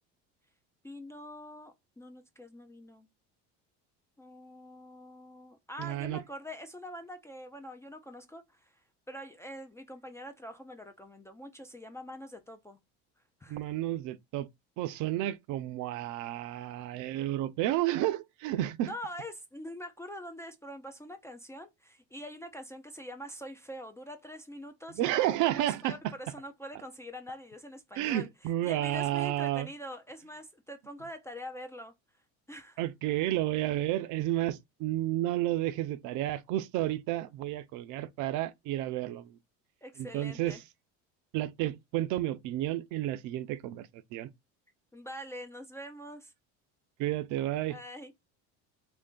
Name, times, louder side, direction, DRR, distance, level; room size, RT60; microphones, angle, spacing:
voice 1, 0.8-3.1 4.2-12.8 13.2-13.6 18.8-25.3 25.5-31.9 32.5-32.8 39.8-40.6 44.9-46.3 47.7-48.1, equal, 10° left, 0.3 m, -44 dB
voice 2, 5.8-6.2 13.5-14.5 14.8-18.9 25.0-26.1 28.0-29.7 32.8-39.4 40.0-40.6 41.3-44.3 47.0-47.8, right 14 dB, 65° right, 0.5 m, -31 dB
3.2 x 2.6 x 3.6 m
cardioid pair, 125°, 33 cm